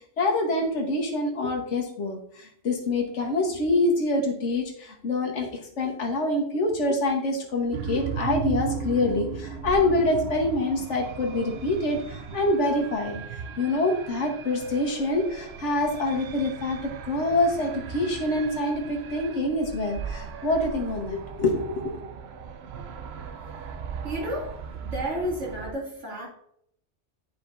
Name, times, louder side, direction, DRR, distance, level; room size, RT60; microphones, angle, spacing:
voice 1, 0.2-5.5 5.8-13.2 13.6-21.9, left 2 dB, 85° left, 2 dB, 1.5 m, -26 dB
sound 1, 7.7-25.7, right 6 dB, 65° right, 0.8 m, -37 dB
voice 2, 24.0-26.3, equal, 85° right, -3 dB, 2.4 m, -32 dB
9.7 x 5.0 x 2.6 m, 0.69 s
omnidirectional pair, 1.2 m